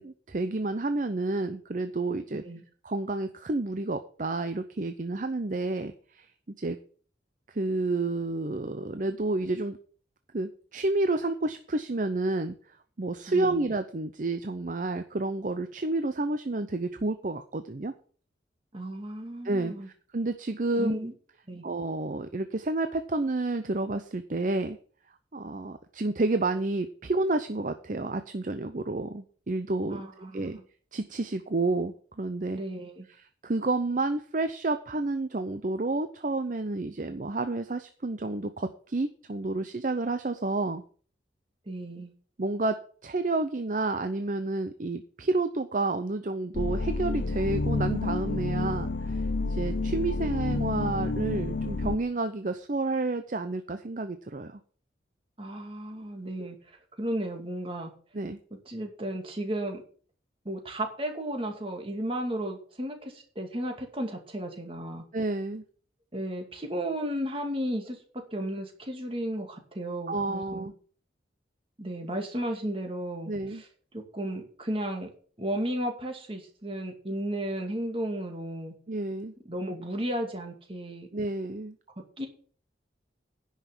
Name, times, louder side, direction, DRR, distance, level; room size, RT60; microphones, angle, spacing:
voice 1, 0.0-2.4 2.8-6.3 6.6-6.8 7.5-9.8 10.3-12.6 13.0-17.9 19.4-19.7 20.1-21.0 21.6-24.8 25.3-30.0 30.3-30.6 30.9-32.6 33.1-40.8 42.4-54.6 56.4-56.5 58.1-58.4 65.1-65.6 70.1-70.7 73.3-73.6 78.9-79.3 81.1-81.8, right 2 dB, 45° right, 9 dB, 0.7 m, -30 dB
voice 2, 13.3-13.6 18.7-19.9 20.8-21.1 21.5-21.6 29.9-30.6 32.5-33.0 41.7-42.1 55.4-56.6 57.0-57.9 58.7-59.8 60.4-65.0 66.1-68.0 68.3-70.7 71.8-73.7 73.9-75.1 75.4-78.7 79.5-81.1 82.2-82.3, right 1 dB, 30° right, 4 dB, 2.3 m, -34 dB
sound 1, 46.5-52.0, left 3 dB, 80° left, 0.7 m, -29 dB
10.5 x 5.8 x 7.5 m, 0.43 s
head